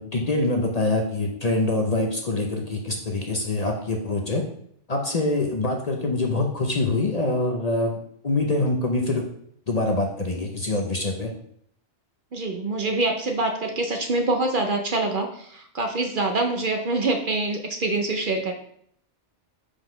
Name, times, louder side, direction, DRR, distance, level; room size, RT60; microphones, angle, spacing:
voice 1, 0.0-4.4 4.9-8.0 8.2-9.2 9.7-11.3, left 2 dB, 40° left, 2 dB, 0.7 m, -24 dB
voice 2, 12.3-18.5, right 2 dB, 50° right, 4 dB, 0.8 m, -25 dB
4.9 x 3.9 x 5.2 m, 0.65 s
omnidirectional pair, 1.2 m